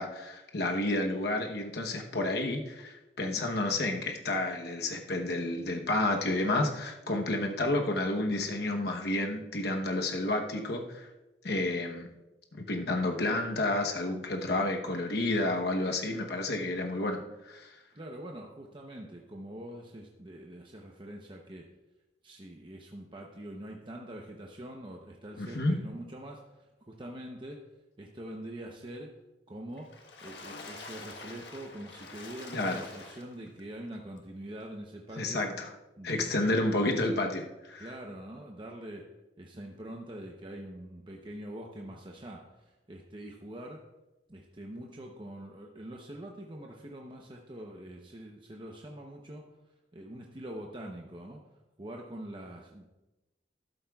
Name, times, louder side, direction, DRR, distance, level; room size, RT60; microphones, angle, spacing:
voice 1, 0.0-11.1 11.4-12.1 12.6-17.2 17.4-17.7 25.4-25.7 32.5-32.8 35.2-35.7 36.0-37.9, left 2 dB, 65° left, 2 dB, 1.0 m, -30 dB
voice 2, 17.9-21.7 22.2-27.6 28.0-29.1 29.5-29.9 30.2-35.4 36.0-36.6 37.8-39.0 39.4-43.8 44.3-49.4 49.9-51.4 51.8-52.8, right 1 dB, 30° right, 0 dB, 0.8 m, -44 dB
Water / Splash splatter, 29.8-33.6 34.2-34.3 34.6-34.7, left 3 dB, 80° left, 1.4 m, -46 dB
13.0 x 11.5 x 2.4 m, 1.0 s
head